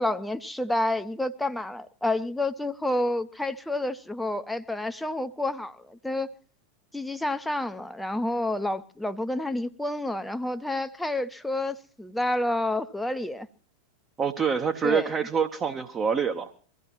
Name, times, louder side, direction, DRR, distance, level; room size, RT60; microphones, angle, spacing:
voice 1, 0.0-6.3 6.9-13.5 14.8-15.1, left 1 dB, 5° left, 0.7 m, -29 dB
voice 2, 14.2-16.5, right 6 dB, 25° right, 0.9 m, -26 dB
24.0 x 15.5 x 3.0 m
figure-of-eight pair, 90°, 0 cm